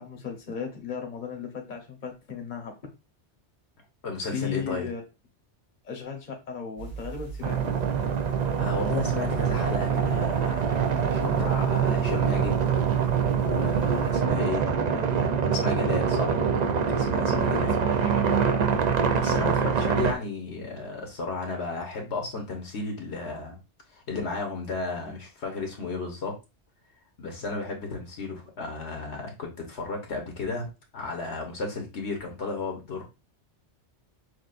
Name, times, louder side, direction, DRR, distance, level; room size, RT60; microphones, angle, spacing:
voice 1, 0.0-2.8 4.3-5.0 5.8-7.7 17.3-18.7, left 6 dB, 45° left, 3 dB, 1.1 m, -36 dB
voice 2, 4.0-4.9 8.6-12.6 13.4-16.5 16.9-17.8 19.1-23.6 23.9-26.4 27.2-33.0, left 3 dB, 70° left, 2 dB, 1.3 m, -33 dB
sound 1, 6.8-14.2, right 5 dB, 85° right, 1.8 m, -38 dB
sound 2, 7.4-20.1, right 7 dB, 55° right, 0.5 m, -25 dB
6.3 x 2.4 x 2.5 m, 0.28 s
omnidirectional pair, 1.2 m